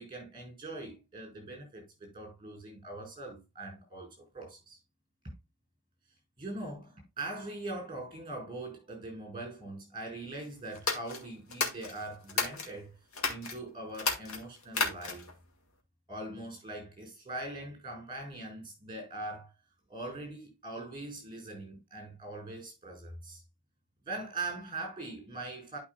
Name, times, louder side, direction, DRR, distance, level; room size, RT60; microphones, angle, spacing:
voice 1, 0.0-1.8 2.1-4.8 6.4-13.0 13.3-15.3 16.1-19.5 19.9-23.4 24.0-25.8, right 2 dB, 20° right, 4.6 m, -42 dB
sound 1, 10.7-12.7 13.1-13.5 13.9-15.3, left 4 dB, 85° left, 2.1 m, -33 dB
11.5 x 5.3 x 2.3 m
head